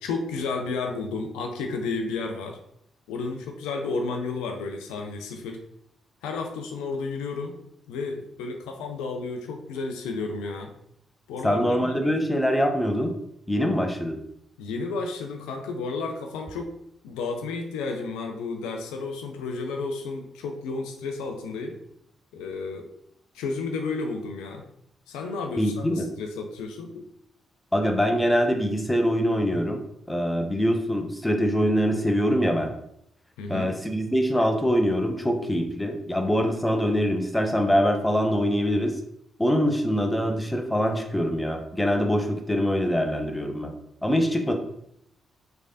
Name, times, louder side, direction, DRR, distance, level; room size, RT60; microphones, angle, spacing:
voice 1, 0.0-2.6 3.1-5.6 6.2-7.6 7.9-10.7 11.3-12.1 14.6-16.7 17.0-21.8 22.3-22.9 23.3-24.6 25.1-27.1 33.4-33.7, left 4 dB, 80° left, 3 dB, 0.3 m, -32 dB
voice 2, 11.4-13.1 13.5-14.2 25.6-26.1 27.7-29.8 30.1-32.7 33.5-38.9 39.4-43.7 44.0-44.5, equal, 10° left, 4 dB, 0.6 m, -24 dB
3.3 x 3.2 x 2.6 m, 0.74 s
hypercardioid pair, 40°, 0 cm